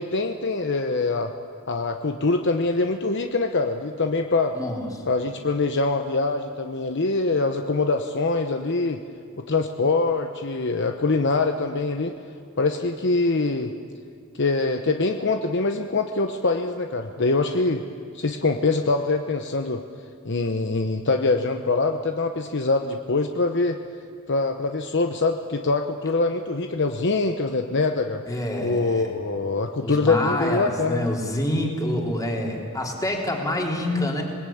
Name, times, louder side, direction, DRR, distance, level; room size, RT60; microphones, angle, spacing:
voice 1, 0.0-1.3 1.7-4.5 5.1-9.0 9.4-12.2 12.6-13.7 14.4-17.8 18.1-19.8 20.2-23.8 24.3-28.2 28.6-31.1, left 3 dB, 60° left, 5 dB, 1.0 m, -24 dB
voice 2, 4.5-4.9 28.3-29.1 29.8-34.2, left 1 dB, 15° left, 0 dB, 3.5 m, -27 dB
27.0 x 20.0 x 8.7 m, 2.2 s
head